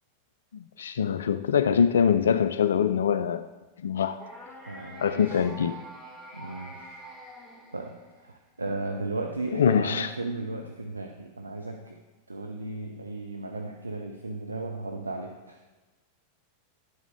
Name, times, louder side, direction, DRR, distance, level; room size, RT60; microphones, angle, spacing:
voice 1, 0.5-3.5 3.8-4.2 5.0-5.8 9.5-10.1, left 7 dB, 65° left, 11 dB, 0.3 m, -24 dB
sound 1, 4.2-8.4, right 1 dB, ahead, 1.6 m, -45 dB
voice 2, 4.6-5.4 6.3-7.0 7.7-12.0 12.3-15.6, right 2 dB, 80° right, 3 dB, 0.6 m, -35 dB
11.0 x 7.2 x 3.7 m, 1.2 s
figure-of-eight pair, 90°, 0 cm